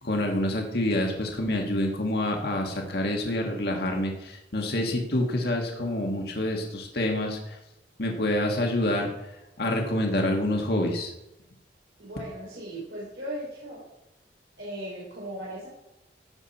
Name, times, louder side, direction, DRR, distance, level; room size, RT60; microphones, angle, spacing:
voice 1, 0.0-7.6 8.0-9.1 9.6-11.1, left 1 dB, 60° left, 1 dB, 1.8 m, -27 dB
voice 2, 12.0-13.8 14.6-15.7, right 1 dB, 90° right, -6 dB, 3.9 m, -37 dB
16.0 x 7.2 x 4.3 m, 0.91 s
head